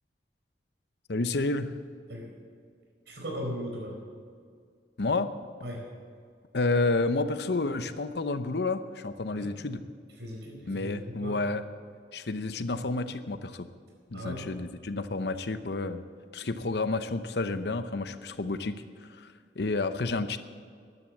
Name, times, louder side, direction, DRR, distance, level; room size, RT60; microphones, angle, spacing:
voice 1, 1.1-1.7 5.0-5.3 6.5-9.8 10.7-11.6 12.1-13.7 14.1-16.0 16.3-20.4, left 3 dB, 70° left, 11 dB, 0.8 m, -30 dB
voice 2, 3.1-3.9 5.6-5.9 9.3-9.5 10.2-11.4 14.1-14.5, equal, 80° right, 0 dB, 4.5 m, -38 dB
14.0 x 11.0 x 7.2 m, 2.1 s
head